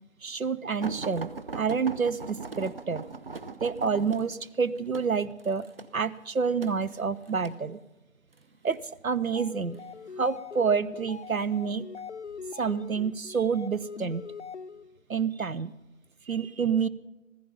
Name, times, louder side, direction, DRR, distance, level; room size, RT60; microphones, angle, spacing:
voice 1, 0.2-3.0 3.6-5.7 5.9-7.8 8.6-9.8 10.2-11.9 12.5-14.2 15.1-15.7 16.3-16.9, right 5 dB, 90° right, 15 dB, 0.8 m, -28 dB
sound 1, 0.8-7.6 8.4-8.8 9.7-10.4 11.1-11.3 11.7-11.8, right 4 dB, 45° right, 0.7 m, -40 dB
sound 2, 9.2-15.0, left 6 dB, 55° left, 0.5 m, -42 dB
15.5 x 15.0 x 5.2 m, 1.0 s
figure-of-eight pair, 160°, 41 cm